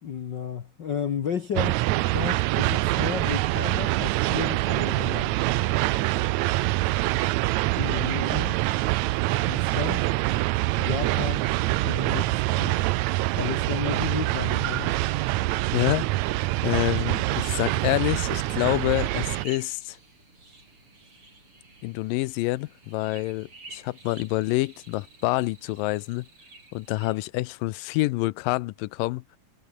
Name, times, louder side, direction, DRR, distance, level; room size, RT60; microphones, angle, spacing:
voice 1, 0.0-5.3 7.8-8.6 9.5-10.1 10.8-11.4 11.8-12.8 13.3-15.0, left 7 dB, 65° left, 1.1 m, -33 dB
sound 1, 1.5-19.5, right 18 dB, 80° right, 1.7 m, -25 dB
voice 2, 15.7-16.1 16.6-20.0 21.8-26.3 26.7-29.2, left 20 dB, 85° left, 2.3 m, -27 dB
sound 2, 16.8-27.2, right 3 dB, 40° right, 8.2 m, -50 dB
omnidirectional pair, 3.9 m